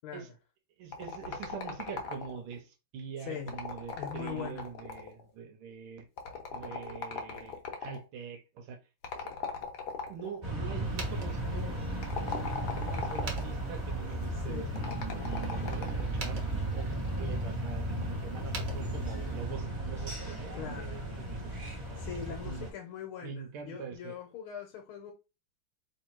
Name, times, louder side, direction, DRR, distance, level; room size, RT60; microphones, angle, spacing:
voice 1, 0.0-0.3 3.2-3.5 3.9-4.7 14.3-14.8 20.5-21.0 22.0-25.1, left 8 dB, 80° left, 1.7 m, -42 dB
voice 2, 0.8-6.0 6.5-8.8 9.2-9.3 10.1-11.7 12.2-16.4 16.7-21.5 21.9-22.7 23.2-24.2, right 6 dB, 80° right, 1.6 m, -44 dB
sound 1, 0.9-2.5 3.4-5.2 6.2-8.0 9.0-10.4 11.9-13.5 14.8-16.1, left 5 dB, 60° left, 1.3 m, -39 dB
sound 2, 10.4-22.7, right 1 dB, 20° right, 1.9 m, -35 dB
sound 3, 10.8-19.5, right 4 dB, 60° right, 1.7 m, -48 dB
3.4 x 3.1 x 4.5 m
omnidirectional pair, 2.3 m